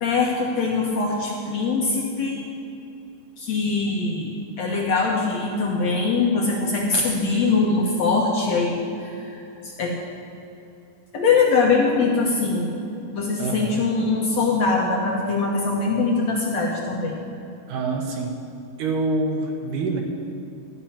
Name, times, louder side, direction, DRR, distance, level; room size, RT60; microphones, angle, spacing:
voice 1, 0.0-2.5 3.4-10.0 11.1-12.7 13.1-17.2, left 4 dB, 65° left, -2 dB, 1.8 m, -22 dB
voice 2, 13.4-13.8 17.7-18.3 18.8-20.0, right 3 dB, 70° right, 2 dB, 2.2 m, -26 dB
12.0 x 10.5 x 5.8 m, 2.7 s
omnidirectional pair, 4.3 m